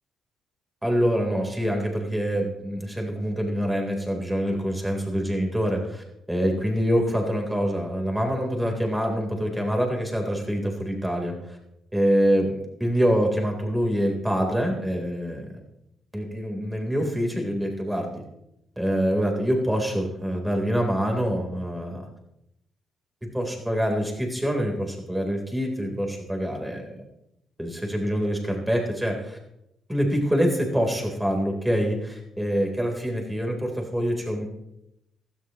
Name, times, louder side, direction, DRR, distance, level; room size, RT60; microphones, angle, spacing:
voice 1, 0.8-11.6 11.9-15.5 16.1-18.2 18.8-22.0 23.3-26.8 27.6-29.4 29.9-34.5, equal, 5° right, 1 dB, 3.8 m, -25 dB
16.5 x 13.0 x 3.1 m, 0.83 s
cardioid pair, 90°, 0 cm